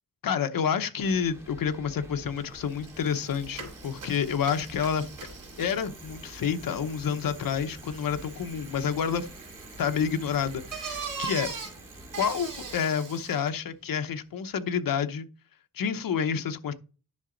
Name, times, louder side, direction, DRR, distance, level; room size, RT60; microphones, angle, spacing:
voice 1, 0.2-5.1 5.6-9.3 9.8-11.5 12.2-15.3 15.7-16.7, left 7 dB, 70° left, 0.9 m, -29 dB
sound 1, 1.0-12.8, equal, 10° right, 2.9 m, -48 dB
Bicycle, 2.4-2.5 2.7-13.5, right 5 dB, 60° right, 3.0 m, -42 dB
10.5 x 5.9 x 3.9 m
wide cardioid pair, 135°, 35 cm